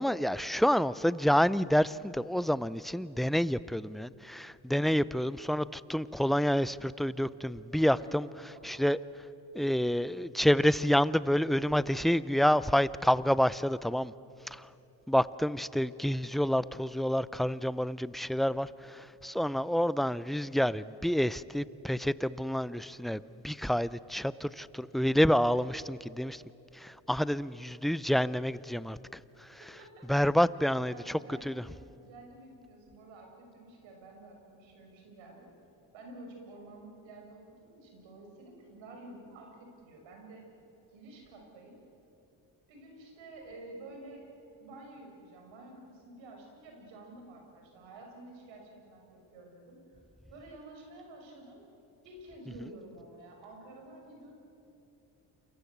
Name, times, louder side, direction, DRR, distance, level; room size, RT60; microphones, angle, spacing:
voice 1, 0.0-8.3 8.6-9.0 9.5-14.1 14.5-14.7 15.1-26.4 26.7-29.6 30.1-31.6, equal, ahead, 18 dB, 0.5 m, -28 dB
voice 2, 29.6-30.1 30.5-35.5 35.9-40.4 40.9-41.8 42.7-44.3 44.6-50.0 50.3-51.6 52.0-54.3, right 2 dB, 75° right, 2 dB, 6.3 m, -50 dB
28.5 x 23.0 x 8.1 m, 2.9 s
supercardioid pair, 75°, 46 cm